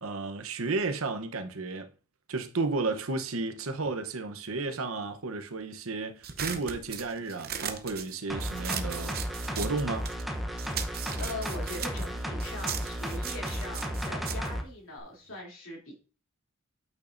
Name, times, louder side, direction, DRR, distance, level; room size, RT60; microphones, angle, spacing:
voice 1, 0.0-1.9 2.3-9.2 9.5-10.1, right 3 dB, 75° right, 0.9 m, -33 dB
sound 1, 6.2-10.3 10.6-15.4, right 8 dB, 45° right, 0.8 m, -38 dB
sound 2, 8.3-14.6 15.0-15.1, equal, ahead, 0.8 m, -34 dB
voice 2, 10.9-15.9, left 2 dB, 65° left, 2.9 m, -41 dB
8.6 x 6.4 x 2.6 m
head